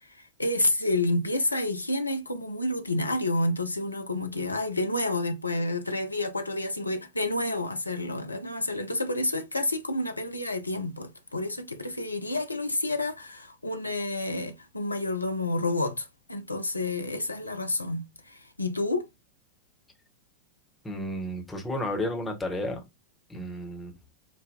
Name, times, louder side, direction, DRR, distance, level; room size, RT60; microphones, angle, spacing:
voice 1, 0.1-19.1, left 2 dB, 85° left, 0.4 m, -29 dB
voice 2, 20.8-22.8 23.3-23.9, left 1 dB, 10° left, 1.0 m, -32 dB
5.0 x 2.1 x 2.7 m
figure-of-eight pair, 90°, 0 cm